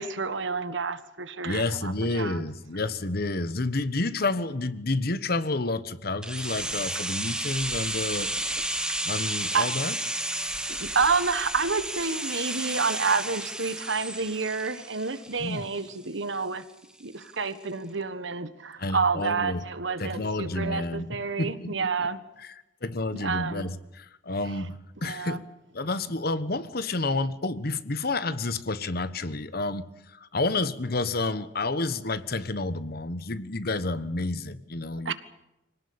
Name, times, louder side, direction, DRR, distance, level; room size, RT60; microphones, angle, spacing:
voice 1, 0.0-2.4 9.5-9.7 10.5-16.6 17.0-22.2 23.1-23.7 25.0-25.4 35.0-35.1, right 4 dB, 70° right, 12 dB, 1.5 m, -29 dB
voice 2, 1.4-8.3 9.0-10.0 15.4-15.7 18.8-19.7 20.0-22.1 22.4-22.5 22.8-25.4 25.7-35.1, left 2 dB, 50° left, 14 dB, 1.2 m, -30 dB
sound 1, 6.2-16.1 16.3-16.4, right 1 dB, 5° right, 1.4 m, -32 dB
25.5 x 18.0 x 8.7 m, 0.92 s
head